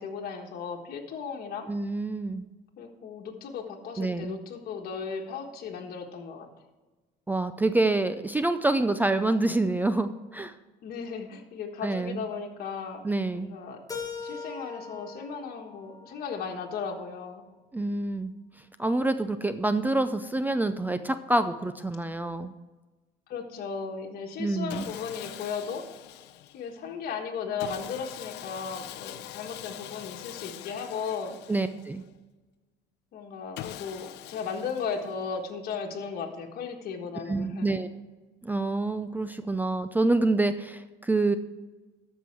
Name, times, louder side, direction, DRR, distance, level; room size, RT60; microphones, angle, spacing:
voice 1, 0.0-1.7 2.8-6.5 10.8-13.0 13.3-13.8 14.2-17.4 23.3-25.8 26.5-31.3 33.1-37.7, left 6 dB, 65° left, 1 dB, 1.4 m, -36 dB
voice 2, 1.7-2.4 4.0-4.4 7.3-10.5 11.8-12.2 13.0-13.5 17.7-18.3 18.8-22.5 24.4-24.9 31.5-32.0 37.3-37.9 38.4-41.4, right 2 dB, 10° right, 10 dB, 0.4 m, -27 dB
Keyboard (musical), 13.9-16.8, left 5 dB, 20° left, 1.7 m, -41 dB
Sawing, 24.7-26.7 27.6-32.1 33.6-35.4, left 13 dB, 85° left, 0.5 m, -43 dB
13.5 x 5.5 x 4.6 m, 1.2 s
cardioid pair, 110°, 17 cm